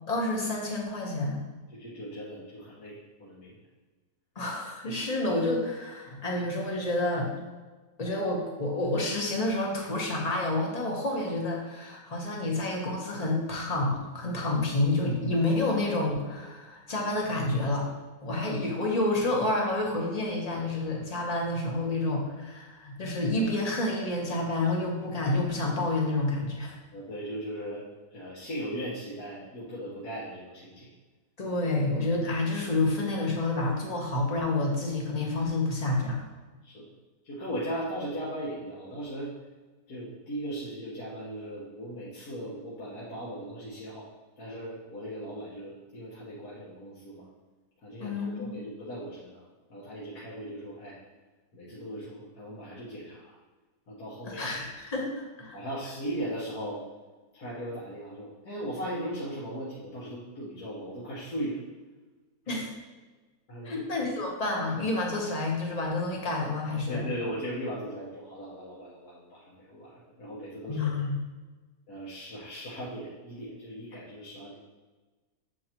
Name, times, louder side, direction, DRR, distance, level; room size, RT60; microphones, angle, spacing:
voice 1, 0.1-1.4 4.3-7.3 8.0-17.9 18.2-26.8 31.4-36.2 48.0-48.5 54.3-55.6 62.5-62.7 63.6-67.1 70.7-71.2, left 2 dB, 30° left, -1 dB, 0.9 m, -29 dB
voice 2, 1.7-3.6 26.9-27.8 28.1-30.9 36.6-36.9 37.2-39.3 39.9-44.1 44.4-47.2 47.8-49.4 49.7-51.0 51.5-53.4 53.9-54.6 55.5-56.8 57.3-61.6 63.5-64.1 66.9-70.9 71.9-74.5, equal, 75° left, -8 dB, 1.7 m, -38 dB
7.4 x 4.6 x 2.9 m, 1.3 s
omnidirectional pair, 1.7 m